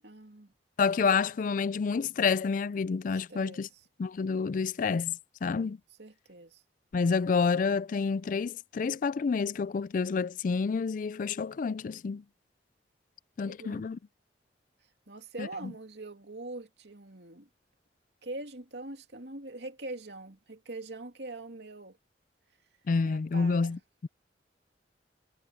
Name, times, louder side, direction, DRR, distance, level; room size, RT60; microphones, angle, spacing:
voice 1, 0.0-0.5 3.3-3.6 6.0-6.6 13.5-13.8 15.1-17.5 18.2-22.0 23.0-23.8, right 2 dB, 75° right, 2.6 m, -43 dB
voice 2, 0.8-3.7 4.0-5.8 6.9-12.2 13.4-14.0 15.4-15.7 22.9-24.1, left 5 dB, 50° left, 0.4 m, -29 dB
head